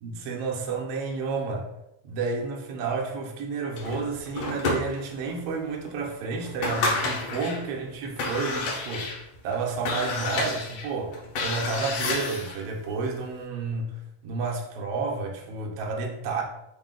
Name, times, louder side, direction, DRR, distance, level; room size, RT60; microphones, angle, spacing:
voice 1, 0.0-1.7 2.0-16.4, right 4 dB, 70° right, 1.5 m, -31 dB
sound 1, 3.8-5.3 5.8-5.9 6.4-7.6 8.1-12.6, left 3 dB, 85° left, 2.2 m, -30 dB
4.8 x 2.2 x 3.7 m
omnidirectional pair, 3.3 m